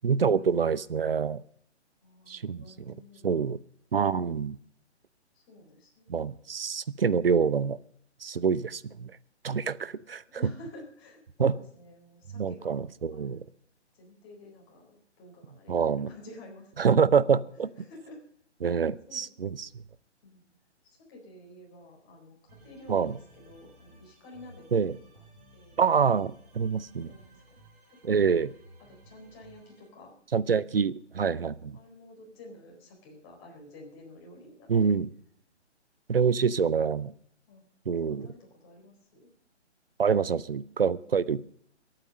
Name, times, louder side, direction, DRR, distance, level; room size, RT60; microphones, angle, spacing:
voice 1, 0.0-1.4 2.3-2.9 3.2-3.6 3.9-4.6 6.1-7.8 8.2-9.1 9.4-10.4 11.4-11.5 12.4-13.4 15.7-16.1 16.8-17.9 18.6-19.7 22.9-23.2 24.7-25.0 25.8-27.1 28.0-28.5 30.3-31.8 34.7-35.1 36.1-37.1 37.9-38.3 40.0-41.6, right 6 dB, 55° right, 18 dB, 0.7 m, -26 dB
voice 2, 2.0-3.4 5.3-6.1 10.3-12.8 13.1-13.5 13.9-16.7 17.8-18.2 19.1-19.3 20.2-20.5 20.8-25.3 25.5-25.8 26.8-27.5 27.9-28.2 28.8-30.1 31.2-35.0 36.1-36.6 37.5-37.6 38.1-39.3 40.9-41.3, left 1 dB, 20° left, -1 dB, 4.1 m, -51 dB
sound 1, 22.5-29.9, right 1 dB, 35° right, 5.2 m, -56 dB
21.5 x 9.1 x 5.2 m, 0.63 s
figure-of-eight pair, 140°, 35 cm